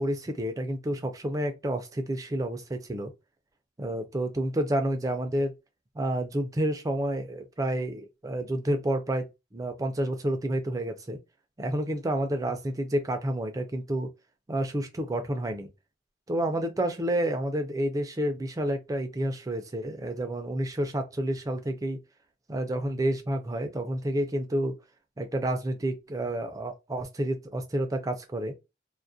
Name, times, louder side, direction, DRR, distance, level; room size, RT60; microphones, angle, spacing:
voice 1, 0.0-3.1 3.8-5.5 6.0-9.3 9.5-11.2 11.6-14.1 14.5-15.7 16.3-22.0 22.5-24.8 25.2-28.6, right 1 dB, 20° right, 0.4 m, -29 dB
2.3 x 2.0 x 2.5 m
head